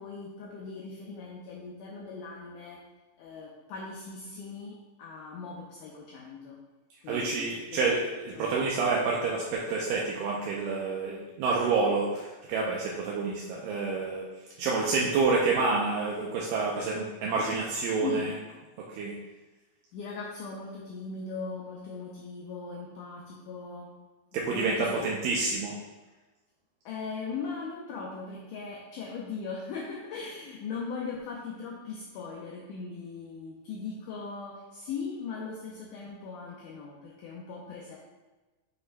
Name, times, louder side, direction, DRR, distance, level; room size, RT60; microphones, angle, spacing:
voice 1, 0.0-2.8 3.2-6.6 7.0-7.4 7.7-8.0 8.3-9.0 18.0-18.3 19.9-23.9 24.3-25.0 26.9-38.0, left 5 dB, 75° left, -3 dB, 2.0 m, -39 dB
voice 2, 7.1-8.1 8.4-14.2 14.6-18.3 18.8-19.1 24.3-25.8, right 4 dB, 80° right, -3 dB, 2.2 m, -28 dB
7.9 x 5.8 x 2.2 m, 1.2 s
omnidirectional pair, 4.2 m